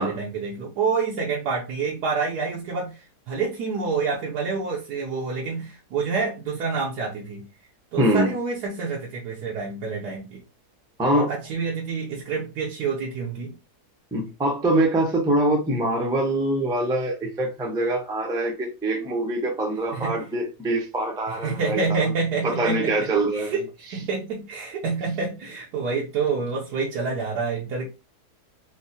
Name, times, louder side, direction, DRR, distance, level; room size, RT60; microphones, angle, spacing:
voice 1, 0.0-3.0 3.3-7.4 7.9-10.4 11.1-13.5 19.9-20.2 21.3-22.9 23.5-23.6 23.9-27.9, right 4 dB, 80° right, 1.3 m, -27 dB
voice 2, 8.0-8.3 11.0-11.3 14.1-22.1 22.4-23.6, right 1 dB, 5° right, 0.4 m, -24 dB
4.5 x 2.1 x 2.7 m
omnidirectional pair, 1.7 m